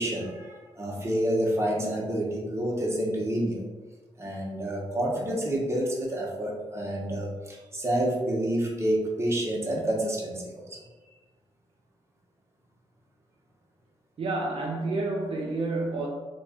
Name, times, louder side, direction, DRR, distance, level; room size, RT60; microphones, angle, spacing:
voice 1, 0.0-3.6 4.2-10.8, right 1 dB, 25° right, -2 dB, 1.0 m, -28 dB
voice 2, 14.2-16.1, right 2 dB, 55° right, -3 dB, 0.6 m, -29 dB
3.1 x 2.4 x 4.2 m, 1.2 s
cardioid pair, 75°, 11 cm